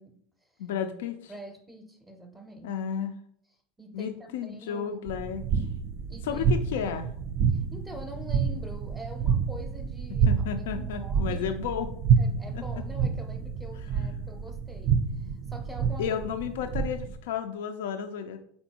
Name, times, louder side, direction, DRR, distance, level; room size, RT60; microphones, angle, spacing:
voice 1, 0.0-0.6 1.3-2.7 3.8-5.0 6.1-6.6 7.5-10.3 10.7-11.5 12.2-16.1, equal, 5° right, 3 dB, 0.6 m, -45 dB
voice 2, 0.6-1.3 2.6-3.2 3.9-5.6 6.2-7.1 10.3-11.9 12.5-12.8 16.0-18.4, left 8 dB, 85° left, 8 dB, 0.4 m, -32 dB
sound 1, 5.1-17.2, right 6 dB, 50° right, 0.3 m, -28 dB
4.3 x 3.8 x 2.8 m, 0.64 s
supercardioid pair, 125°, 0 cm